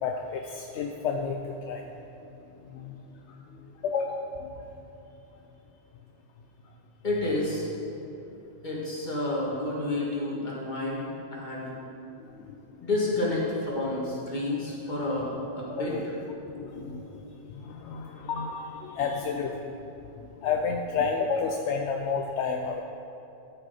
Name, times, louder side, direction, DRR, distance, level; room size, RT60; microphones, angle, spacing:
voice 1, 0.0-1.9 2.7-3.0 3.3-4.5 12.2-12.9 14.1-14.2 15.7-16.0 16.5-19.8 20.4-22.8, left 5 dB, 80° left, 2 dB, 0.9 m, -31 dB
voice 2, 7.0-7.7 8.6-11.0 11.3-11.7 12.8-15.9, left 2 dB, 40° left, -5 dB, 2.0 m, -29 dB
12.5 x 5.7 x 4.1 m, 2.9 s
omnidirectional pair, 1.2 m